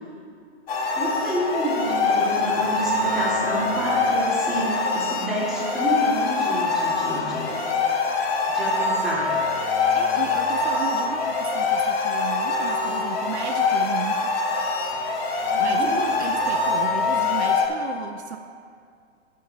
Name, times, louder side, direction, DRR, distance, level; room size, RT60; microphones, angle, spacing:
sound 1, 0.7-17.7, left 4 dB, 55° left, 1.6 m, -24 dB
voice 1, 1.0-7.6 8.5-9.4 15.4-15.9, right 1 dB, ahead, -7 dB, 2.0 m, -29 dB
voice 2, 9.9-14.3 15.6-18.4, right 8 dB, 65° right, 7 dB, 0.6 m, -34 dB
18.0 x 6.4 x 2.8 m, 2.3 s
hypercardioid pair, 130°, 36 cm